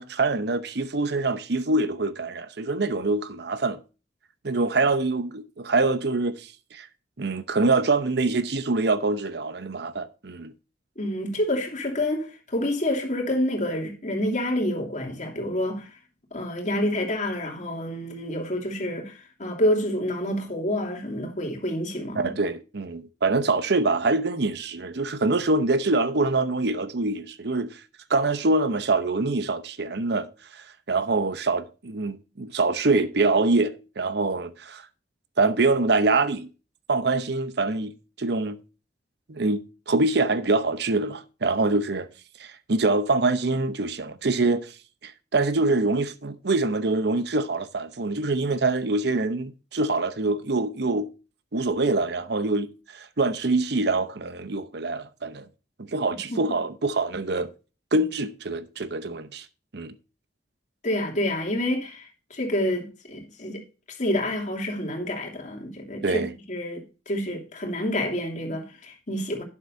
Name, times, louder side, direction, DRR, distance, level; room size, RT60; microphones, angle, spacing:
voice 1, 0.0-3.8 4.4-6.9 7.2-10.5 22.1-27.8 28.1-34.8 35.4-36.5 36.9-37.9 38.2-38.6 39.3-42.1 42.4-44.7 45.0-51.1 51.5-55.5 55.8-57.5 57.9-59.5 59.7-59.9 66.0-66.3, right 3 dB, 65° right, 0.9 m, -25 dB
voice 2, 11.0-16.0 16.3-22.3 56.3-56.4 60.8-63.6 63.9-69.4, left 1 dB, 45° left, 3.0 m, -28 dB
11.5 x 9.9 x 2.7 m
head